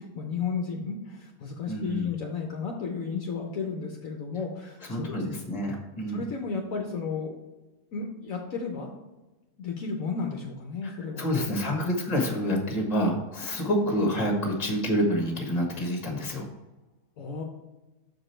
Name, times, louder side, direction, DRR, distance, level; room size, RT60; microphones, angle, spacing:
voice 1, 0.0-5.2 6.1-7.3 7.9-8.9 9.6-11.2 17.2-17.4, left 5 dB, 65° left, 1 dB, 1.1 m, -33 dB
voice 2, 1.7-2.1 4.9-6.2 10.8-16.5, equal, 25° left, 1 dB, 1.4 m, -28 dB
6.8 x 5.0 x 4.4 m, 1.1 s
omnidirectional pair, 1.7 m